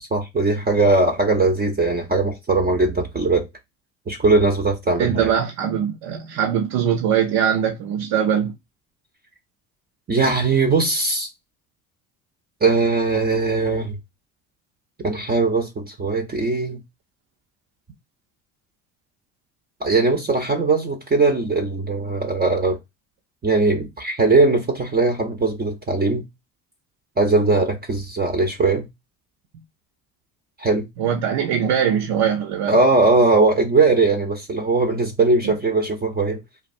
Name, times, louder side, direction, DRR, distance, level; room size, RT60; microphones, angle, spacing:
voice 1, 0.1-3.5 4.1-5.3 10.1-11.3 12.6-14.0 15.0-16.8 19.8-22.8 23.4-26.3 27.2-28.9 30.6-30.8 32.7-36.4, right 3 dB, 25° right, 0.7 m, -20 dB
voice 2, 5.0-8.5 31.0-32.8 35.4-35.6, right 8 dB, 65° right, 0.8 m, -21 dB
3.3 x 2.3 x 2.5 m
hypercardioid pair, 70°, 40 cm